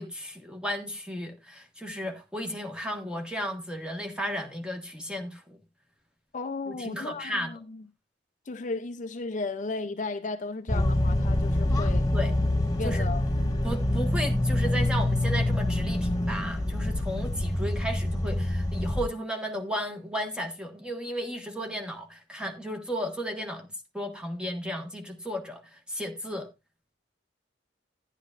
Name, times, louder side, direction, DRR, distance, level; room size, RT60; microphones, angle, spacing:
voice 1, 0.0-5.6 6.7-7.5 12.1-12.3 12.8-13.1 13.6-23.7 23.9-25.6 25.9-26.5, equal, 5° right, 1.4 m, -34 dB
voice 2, 6.3-7.8 8.5-12.1 12.8-13.2, left 3 dB, 40° left, 0.5 m, -34 dB
sound 1, 10.7-19.0, left 1 dB, 20° left, 1.8 m, -26 dB
11.5 x 10.5 x 2.4 m
head